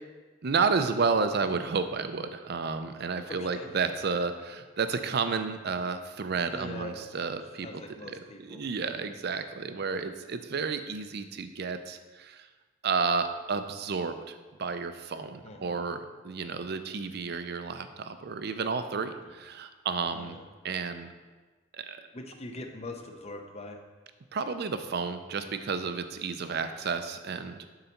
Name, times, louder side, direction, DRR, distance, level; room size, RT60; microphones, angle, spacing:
voice 1, 0.4-7.7 8.0-12.5 12.8-20.4 20.6-21.1 21.7-22.0 24.3-27.6, right 5 dB, 55° right, 9 dB, 0.5 m, -31 dB
voice 2, 3.3-3.7 6.4-7.0 7.6-9.0 15.4-15.8 16.4-16.7 19.2-19.3 20.1-20.4 22.1-23.8, left 2 dB, 35° left, 4 dB, 0.7 m, -43 dB
7.6 x 4.0 x 5.8 m, 1.3 s
head